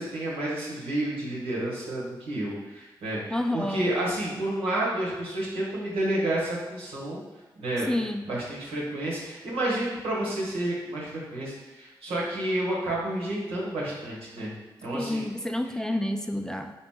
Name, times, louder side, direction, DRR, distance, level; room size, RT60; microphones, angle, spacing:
voice 1, 0.0-7.2 7.5-14.5 14.8-15.2, right 1 dB, 85° right, -6 dB, 1.2 m, -30 dB
voice 2, 3.3-3.8 7.9-8.2 14.9-16.7, left 1 dB, 5° left, 5 dB, 0.4 m, -29 dB
4.0 x 2.9 x 3.6 m, 1.1 s
supercardioid pair, 40°, 9 cm